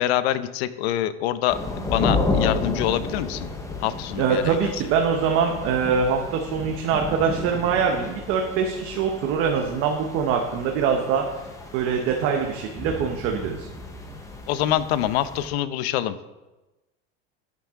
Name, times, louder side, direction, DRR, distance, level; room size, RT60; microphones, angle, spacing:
voice 1, 0.0-1.6 1.9-3.5 3.8-4.7 14.5-16.2, left 12 dB, 80° left, 14 dB, 0.8 m, -25 dB
sound 1, 1.5-15.5, left 3 dB, 10° left, 1.0 m, -32 dB
voice 2, 4.2-11.2 11.7-13.7, right 6 dB, 45° right, 2 dB, 1.1 m, -23 dB
13.0 x 6.9 x 3.7 m, 1.1 s
supercardioid pair, 155°, 31 cm